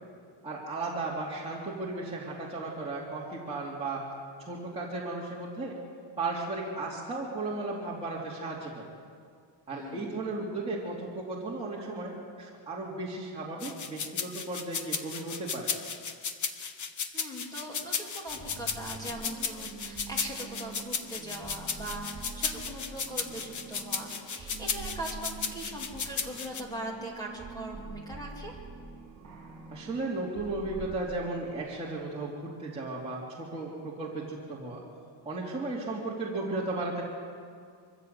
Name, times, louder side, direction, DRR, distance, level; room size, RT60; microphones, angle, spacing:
voice 1, 0.4-4.0 4.5-5.8 6.2-8.9 9.7-15.7 29.7-34.8 35.2-37.0, right 2 dB, 15° right, -7 dB, 2.8 m, -35 dB
voice 2, 9.7-10.3 16.7-16.9 17.1-28.5, right 1 dB, 10° left, -1 dB, 2.9 m, -41 dB
sound 1, 13.6-26.6, left 6 dB, 40° left, 1.2 m, -34 dB
sound 2, 18.3-31.0, right 5 dB, 40° right, 4.2 m, -45 dB
24.0 x 15.0 x 8.3 m, 2.2 s
cardioid pair, 175°, 46 cm